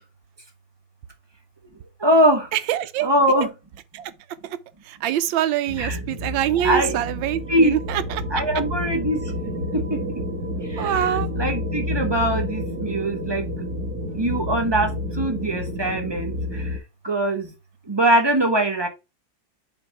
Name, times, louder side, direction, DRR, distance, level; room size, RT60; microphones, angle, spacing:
voice 1, 2.0-2.5 3.0-3.5 5.8-6.0 6.6-7.0 7.5-7.7 8.3-9.2 11.3-13.5 14.2-14.9 15.2-16.3 17.0-17.5 17.9-18.9, right 1 dB, 20° right, 0.8 m, -21 dB
voice 2, 2.5-3.1 3.9-4.1 4.4-4.6 4.9-8.2 10.8-11.3, right 11 dB, 85° right, 1.4 m, -25 dB
sound 1, 5.7-16.8, left 1 dB, 55° right, 1.8 m, -29 dB
7.3 x 3.3 x 4.8 m
omnidirectional pair, 2.1 m